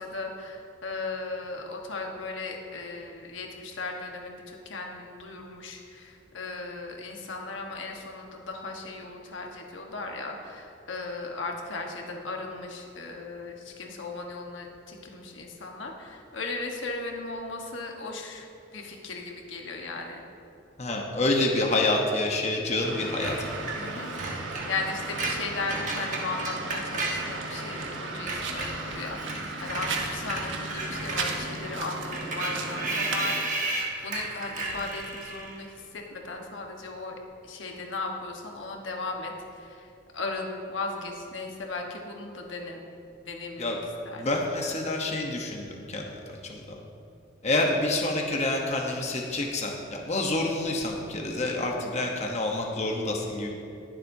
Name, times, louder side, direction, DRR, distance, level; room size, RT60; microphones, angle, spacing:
voice 1, 0.0-20.2 23.8-37.2 37.4-42.8 43.3-43.8 44.0-44.2 51.8-51.9, left 3 dB, 85° left, 1 dB, 1.3 m, -37 dB
voice 2, 20.8-23.4 43.6-43.8 44.1-46.6 47.4-49.7 50.0-53.5, left 2 dB, 35° left, 0 dB, 0.9 m, -27 dB
sound 1, 22.8-33.4, right 3 dB, 85° right, 1.1 m, -36 dB
Screech, 23.2-27.9 28.2-35.6, right 2 dB, 40° right, 1.4 m, -34 dB
20.5 x 7.5 x 2.7 m, 2.8 s
head